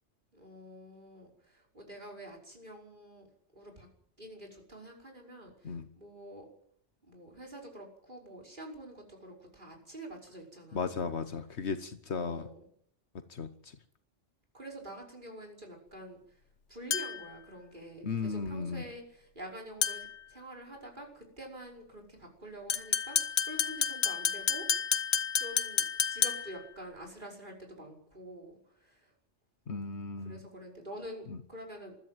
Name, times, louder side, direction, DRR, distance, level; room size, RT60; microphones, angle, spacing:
voice 1, 0.3-3.3 3.5-3.9 4.2-6.5 7.0-10.9 12.1-12.6 14.5-16.4 16.7-25.1 25.4-25.8 26.1-29.1 30.2-31.9, right 1 dB, 45° right, 1 dB, 5.7 m, -47 dB
voice 2, 10.7-12.5 13.3-13.5 18.0-18.8 29.7-30.4, left 5 dB, 70° left, 10 dB, 1.5 m, -35 dB
sound 1, 16.9-17.3 19.8-20.2 22.7-26.6, left 7 dB, 90° left, 1.4 m, -30 dB
20.5 x 14.0 x 9.2 m, 0.65 s
omnidirectional pair, 1.2 m